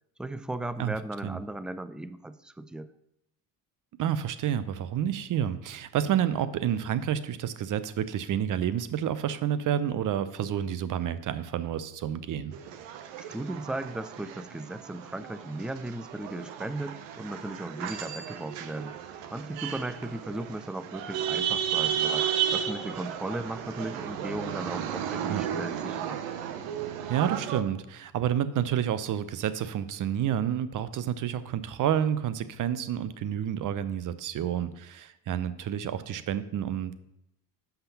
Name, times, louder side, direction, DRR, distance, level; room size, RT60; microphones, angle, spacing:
voice 1, 0.2-2.9 13.3-19.0 19.3-26.3, right 1 dB, ahead, 14 dB, 0.3 m, -36 dB
voice 2, 4.0-12.5 25.3-25.4 27.1-37.0, right 10 dB, 55° right, 13 dB, 0.7 m, -29 dB
sound 1, 12.5-27.6, right 9 dB, 90° right, 0.8 m, -33 dB
5.9 x 5.6 x 6.9 m, 0.81 s
supercardioid pair, 80°, 39 cm